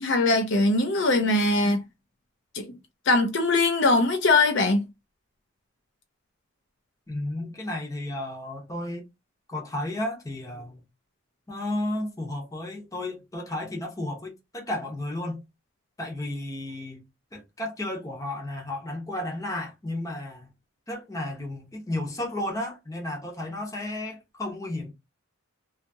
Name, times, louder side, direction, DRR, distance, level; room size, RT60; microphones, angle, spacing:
voice 1, 0.0-1.8 2.5-2.7 3.1-4.8, left 2 dB, 55° left, 0.5 m, -21 dB
voice 2, 7.1-9.0 9.5-10.8 11.5-15.4 16.0-17.0 17.3-20.5 20.9-24.9, left 1 dB, 15° left, 0.7 m, -33 dB
2.7 x 2.4 x 2.6 m
head